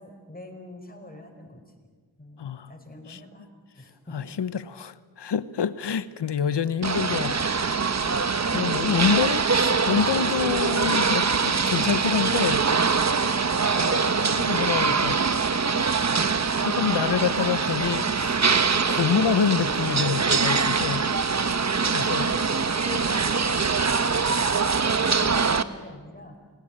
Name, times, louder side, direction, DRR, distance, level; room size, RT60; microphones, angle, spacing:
voice 1, 0.0-1.6 2.2-3.5 3.7-4.3 6.4-6.7 7.9-8.6 22.0-23.9 24.2-26.4, left 1 dB, 20° left, 3 dB, 5.0 m, -44 dB
voice 2, 2.4-2.7 3.1-3.2 4.1-7.5 8.5-12.7 13.6-15.2 16.6-18.4 18.9-21.1 21.9-22.3, left 7 dB, 75° left, 15 dB, 1.0 m, -27 dB
sound 1, 6.8-25.6, right 5 dB, 40° right, 1.1 m, -23 dB
28.0 x 18.0 x 8.7 m, 1.5 s
cardioid pair, 60°, 42 cm